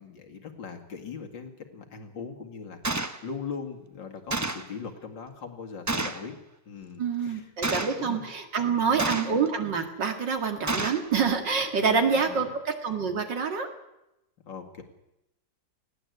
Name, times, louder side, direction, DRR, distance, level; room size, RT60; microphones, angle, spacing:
voice 1, 0.0-6.4 6.7-8.2 8.7-9.1 11.8-12.4 14.5-14.8, left 6 dB, 75° left, 4 dB, 2.9 m, -40 dB
Gunshot gunfire, 2.8-3.2 4.3-4.7 5.9-6.3 7.6-8.0 9.0-9.5 10.7-11.1, right 2 dB, 30° right, 0.3 m, -29 dB
voice 2, 7.0-13.7, right 5 dB, 70° right, 5 dB, 2.8 m, -27 dB
20.0 x 16.0 x 8.1 m, 0.89 s
omnidirectional pair, 2.0 m